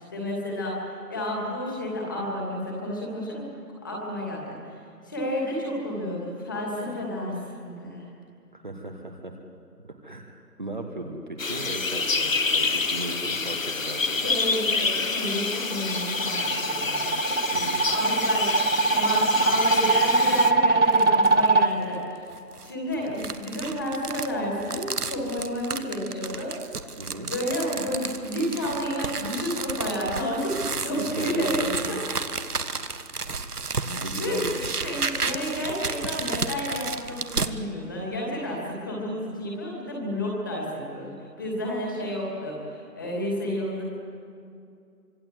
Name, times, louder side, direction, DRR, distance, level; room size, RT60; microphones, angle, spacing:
voice 1, 0.1-3.5 3.8-4.8 5.0-8.1 14.2-17.6 17.8-22.3 22.6-26.9 27.3-31.6 34.2-34.4 34.8-43.8, equal, 15° left, -2 dB, 2.7 m, -31 dB
voice 2, 8.5-9.3 10.0-14.3 17.5-17.8 27.0-27.3 31.0-31.9 33.8-34.7, right 1 dB, 30° right, 2 dB, 1.5 m, -37 dB
sound 1, 11.4-20.5, left 4 dB, 55° left, 1.2 m, -27 dB
sound 2, 15.5-21.7, right 3 dB, 45° right, 1.0 m, -22 dB
sound 3, 19.2-19.8 20.2-20.3 20.9-21.5 22.3-37.5, right 4 dB, 70° right, 1.4 m, -32 dB
25.5 x 23.5 x 7.9 m, 2.5 s
figure-of-eight pair, 175°, 48 cm